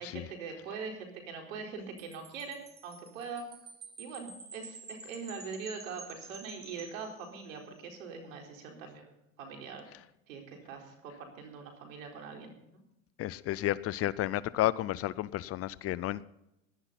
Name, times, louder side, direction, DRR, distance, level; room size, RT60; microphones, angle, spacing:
voice 1, 0.0-3.5 4.0-9.8 10.3-12.8, right 5 dB, 80° right, 3 dB, 4.3 m, -43 dB
Wind chime, 2.0-7.7, right 4 dB, 25° right, 3.2 m, -50 dB
voice 2, 13.2-16.2, left 14 dB, 35° left, 19 dB, 0.5 m, -32 dB
17.0 x 11.5 x 4.1 m, 0.86 s
hypercardioid pair, 100°, 40 cm